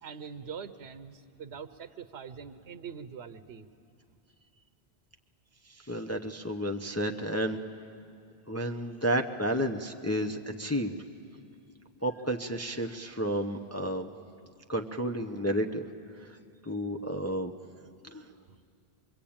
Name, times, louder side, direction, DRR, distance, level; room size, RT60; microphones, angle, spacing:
voice 1, 0.0-3.7 18.1-18.2 18.5-18.6, right 6 dB, 85° right, 11 dB, 1.1 m, -43 dB
voice 2, 5.7-7.6 8.5-10.9 12.0-14.1 14.7-15.9 16.2-16.4 16.6-17.5 18.0-18.3, equal, 15° left, 3 dB, 0.8 m, -31 dB
27.0 x 22.5 x 8.7 m, 2.5 s
omnidirectional pair, 1.1 m